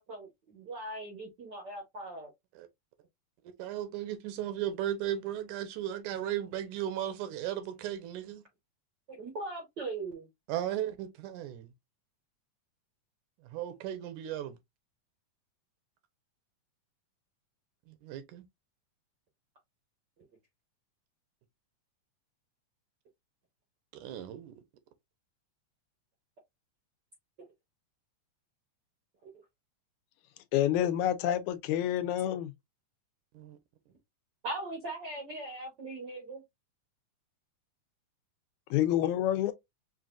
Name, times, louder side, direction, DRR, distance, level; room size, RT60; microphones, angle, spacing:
voice 1, 0.0-2.3 9.1-10.3 29.2-29.3 34.4-36.4, right 2 dB, 65° right, 1.1 m, -40 dB
voice 2, 3.6-8.5 10.5-11.7 13.4-14.6 17.9-18.4 23.9-24.5 33.3-33.6, right 11 dB, 80° right, 2.2 m, -36 dB
voice 3, 30.5-32.5 38.7-39.5, left 12 dB, 80° left, 1.9 m, -28 dB
5.6 x 2.5 x 2.4 m
omnidirectional pair, 3.5 m